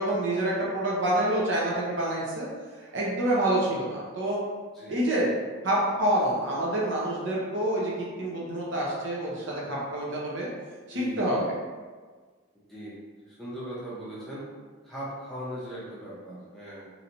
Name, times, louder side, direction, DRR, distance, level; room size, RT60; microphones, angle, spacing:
voice 1, 0.0-2.5 2.8-4.4 4.9-5.3 5.6-10.5 10.9-11.5, right 1 dB, 55° right, -5 dB, 0.7 m, -27 dB
voice 2, 4.7-5.1 9.6-9.7 10.9-11.4 12.7-14.5 14.8-16.9, equal, ahead, -10 dB, 0.6 m, -39 dB
3.1 x 2.7 x 2.7 m, 1.5 s
head